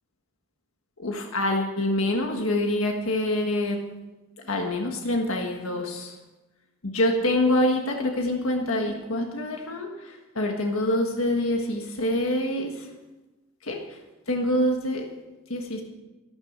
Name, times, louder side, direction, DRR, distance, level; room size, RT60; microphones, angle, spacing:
voice 1, 1.0-3.8 4.5-6.2 6.8-12.9 13.6-13.8 14.3-15.1 15.5-15.8, left 1 dB, 80° left, 2 dB, 1.6 m, -26 dB
12.5 x 11.0 x 6.5 m, 1.1 s
head